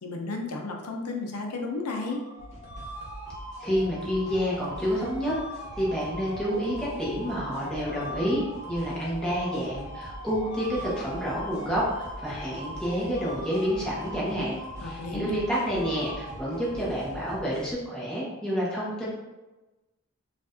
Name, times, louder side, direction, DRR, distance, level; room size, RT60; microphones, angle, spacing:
voice 1, 0.0-2.2 14.8-15.4, left 3 dB, 85° left, 2 dB, 0.6 m, -33 dB
sound 1, 1.9-17.2, equal, 50° left, 1.1 m, -41 dB
sound 2, 2.4-17.7, right 1 dB, 30° right, 1.0 m, -44 dB
voice 2, 3.6-5.3 5.8-11.8 12.2-19.0, equal, 5° left, -8 dB, 1.0 m, -29 dB
4.7 x 2.5 x 2.5 m, 1.1 s
head